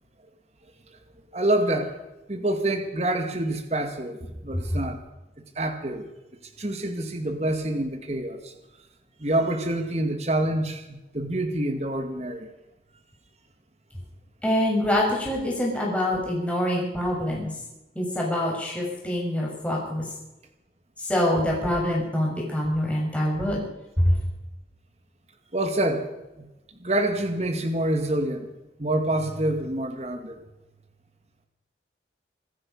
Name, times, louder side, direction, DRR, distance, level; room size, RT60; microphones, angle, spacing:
voice 1, 1.3-1.9 2.3-5.0 5.6-6.1 6.6-8.5 9.2-12.5 25.5-26.1 26.4-26.5 26.8-28.5 28.8-30.4, right 1 dB, 35° right, 6 dB, 2.1 m, -26 dB
voice 2, 14.4-17.5 18.0-20.0 21.0-23.6 24.0-24.1, left 1 dB, 5° left, -3 dB, 5.7 m, -25 dB
26.0 x 9.8 x 5.5 m, 0.98 s
head